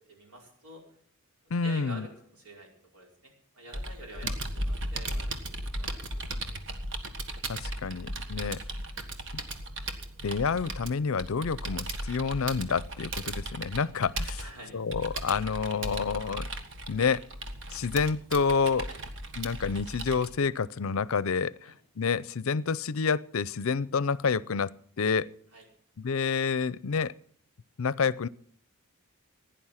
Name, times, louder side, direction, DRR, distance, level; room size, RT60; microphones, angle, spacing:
voice 1, 0.1-0.8 1.6-6.5 14.4-14.8 15.6-15.7 18.9-19.0 21.6-21.7 25.5-25.6, right 2 dB, 85° right, 1 dB, 4.8 m, -48 dB
voice 2, 1.5-2.1 4.2-4.3 7.5-8.6 9.3-9.4 10.2-14.4 14.7-16.5 16.9-17.2 17.7-18.9 19.4-24.7 25.0-25.3 26.0-27.1 27.8-28.3, left 5 dB, 65° left, 20 dB, 0.5 m, -28 dB
Computer keyboard, 3.7-20.3, right 1 dB, 60° right, 1.5 m, -36 dB
16.5 x 10.0 x 5.7 m, 0.63 s
head